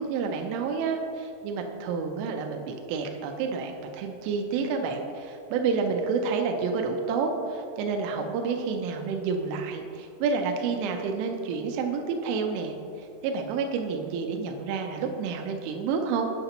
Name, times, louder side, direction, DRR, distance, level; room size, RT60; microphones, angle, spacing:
voice 1, 0.0-16.3, right 5 dB, 90° right, 3 dB, 3.1 m, -29 dB
9.1 x 6.7 x 2.8 m, 2.5 s
omnidirectional pair, 5.5 m